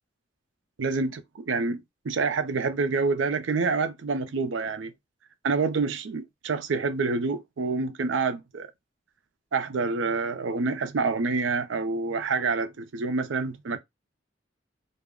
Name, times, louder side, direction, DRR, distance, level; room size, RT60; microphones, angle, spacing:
voice 1, 0.8-4.9 5.4-8.7 9.5-13.8, right 4 dB, 90° right, 0.5 m, -27 dB
2.3 x 2.0 x 3.5 m
head